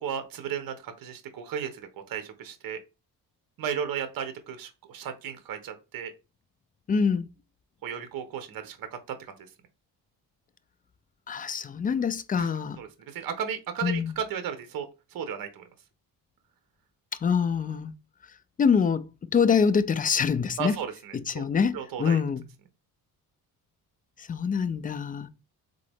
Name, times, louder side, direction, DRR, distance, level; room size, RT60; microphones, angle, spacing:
voice 1, 0.0-2.8 3.6-6.1 7.8-8.9 9.3-9.4 12.3-15.7 20.6-21.4 21.7-22.2, right 8 dB, 60° right, 1.0 m, -35 dB
voice 2, 6.9-7.3 11.3-12.8 13.8-14.1 17.2-17.9 18.6-20.8 21.1-22.4 24.2-25.3, left 6 dB, 25° left, 0.3 m, -25 dB
3.8 x 3.8 x 3.4 m
cardioid pair, 115°, 39 cm